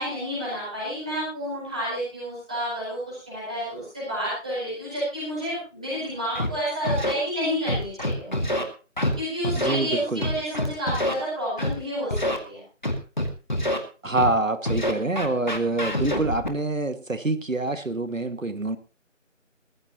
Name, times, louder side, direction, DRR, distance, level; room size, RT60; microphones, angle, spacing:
voice 1, 0.0-8.6 9.2-12.2 12.4-12.6, equal, 5° right, -11 dB, 4.7 m, -30 dB
Scratching (performance technique), 6.4-6.5 6.8-7.1 7.7-8.6 9.0-9.1 9.4-9.8 10.2-11.1 11.6-11.7 12.1-12.4 12.8-13.8 14.2-14.3 14.6-16.5, left 1 dB, 35° left, 2.0 m, -25 dB
voice 2, 9.6-10.3 14.0-18.8, right 2 dB, 80° right, 10 dB, 2.0 m, -26 dB
20.0 x 14.5 x 2.9 m, 0.35 s
figure-of-eight pair, 180°, 39 cm